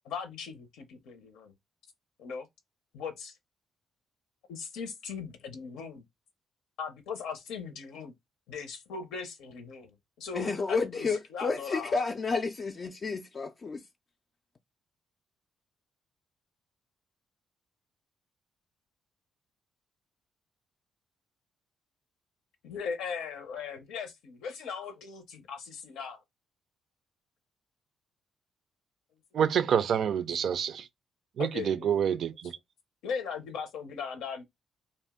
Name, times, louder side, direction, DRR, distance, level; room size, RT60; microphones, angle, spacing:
voice 1, 0.0-1.5 2.2-2.5 2.9-3.3 4.5-6.0 6.8-8.1 8.5-11.9 22.6-26.2 31.4-32.2 33.0-34.4, left 6 dB, 85° left, 0.6 m, -39 dB
voice 2, 10.3-13.8, left 4 dB, 40° left, 0.3 m, -31 dB
voice 3, 29.3-30.8 31.4-32.5, right 8 dB, 65° right, 0.3 m, -27 dB
2.6 x 2.0 x 3.5 m
cardioid pair, 90°, 0 cm